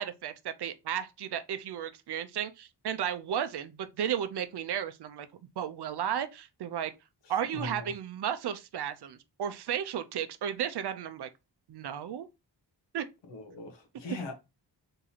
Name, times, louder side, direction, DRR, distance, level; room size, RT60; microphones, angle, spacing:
voice 1, 0.0-5.3 5.6-6.9 7.3-11.3 11.7-12.3 12.9-13.1, right 9 dB, 65° right, 0.6 m, -34 dB
voice 2, 7.5-7.9 13.3-14.3, left 3 dB, 80° left, 1.3 m, -40 dB
4.1 x 3.7 x 2.8 m
wide cardioid pair, 140°, 43 cm